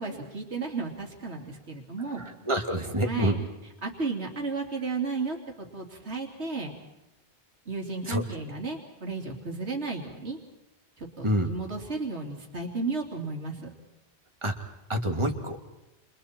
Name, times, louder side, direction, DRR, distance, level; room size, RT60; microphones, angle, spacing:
voice 1, 0.0-2.3 3.0-3.5 3.8-5.4 5.7-6.7 7.7-10.4 11.0-13.7, right 4 dB, 75° right, 1 dB, 3.3 m, -33 dB
voice 2, 2.4-3.4 8.1-8.2 11.2-11.5 14.4-14.5 14.9-15.6, equal, 25° right, 3 dB, 2.5 m, -26 dB
30.0 x 28.5 x 4.4 m, 0.96 s
omnidirectional pair, 1.1 m